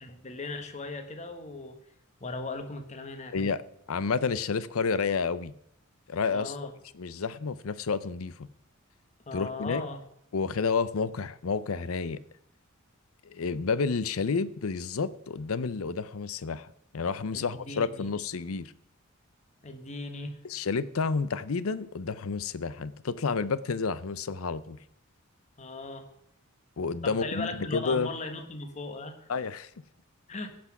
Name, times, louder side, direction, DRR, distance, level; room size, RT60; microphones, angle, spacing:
voice 1, 0.0-1.8 2.2-3.3 6.3-6.7 9.3-10.0 17.3-18.1 19.6-20.3 25.6-26.1 27.0-29.3 30.3-30.5, left 3 dB, 35° left, 1.2 m, -38 dB
voice 2, 3.9-5.5 6.1-6.5 6.9-8.5 9.3-9.9 10.3-12.2 13.2-16.7 16.9-18.7 20.4-24.8 26.8-28.1 29.3-29.7, left 5 dB, 85° left, 0.6 m, -30 dB
16.5 x 6.0 x 5.9 m
head